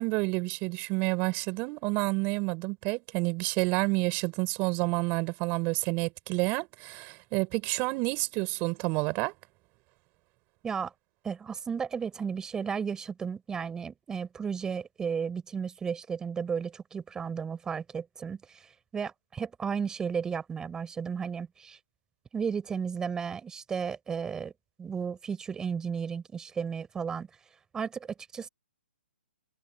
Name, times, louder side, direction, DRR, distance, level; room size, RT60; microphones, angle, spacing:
voice 1, 0.0-9.3, right 27 dB, 25° right, 7.2 m, -29 dB
voice 2, 11.2-18.7 18.9-21.8 22.3-24.5 24.8-27.3 27.7-28.1 28.3-28.5, right 6 dB, 10° right, 5.9 m, -34 dB
hypercardioid pair, 150°, 7 cm